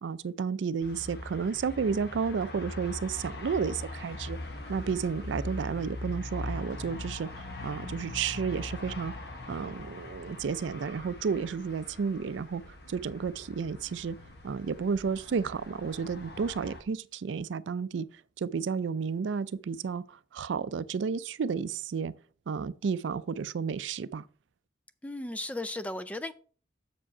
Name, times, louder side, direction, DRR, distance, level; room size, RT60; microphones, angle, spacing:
voice 1, 0.0-4.4 4.7-7.3 7.6-9.1 9.5-12.6 12.9-14.2 14.4-18.1 18.4-20.0 20.3-22.1 22.5-24.2, right 5 dB, 90° right, 0.4 m, -32 dB
sound 1, 0.8-16.8, left 2 dB, 60° left, 1.2 m, -41 dB
voice 2, 25.0-26.3, left 1 dB, 10° left, 0.3 m, -35 dB
6.8 x 5.0 x 4.8 m
head